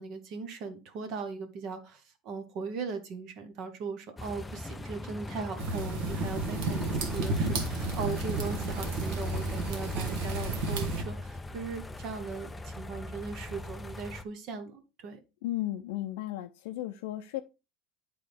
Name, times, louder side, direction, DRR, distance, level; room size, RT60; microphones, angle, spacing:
voice 1, 0.0-15.2, right 5 dB, 45° right, 8 dB, 0.8 m, -39 dB
sound 1, 4.2-14.2, left 1 dB, 10° left, 0.3 m, -39 dB
sound 2, 5.6-11.0, right 3 dB, 65° right, 1.4 m, -32 dB
voice 2, 15.4-17.4, left 14 dB, 85° left, 5 dB, 0.4 m, -34 dB
9.5 x 3.8 x 3.3 m, 0.28 s
cardioid pair, 165°, 0 cm